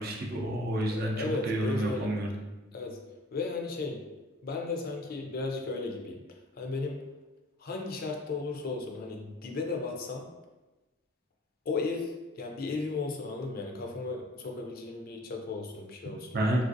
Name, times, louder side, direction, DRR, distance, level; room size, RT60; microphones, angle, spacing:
voice 1, 0.0-2.4 16.3-16.7, right 1 dB, 50° right, 1 dB, 0.4 m, -29 dB
voice 2, 0.9-2.1 2.7-3.0 3.3-4.0 4.4-6.2 6.6-7.0 7.6-10.3 11.7-16.3, left 3 dB, 45° left, 2 dB, 0.4 m, -35 dB
3.2 x 2.5 x 2.5 m, 1.1 s
head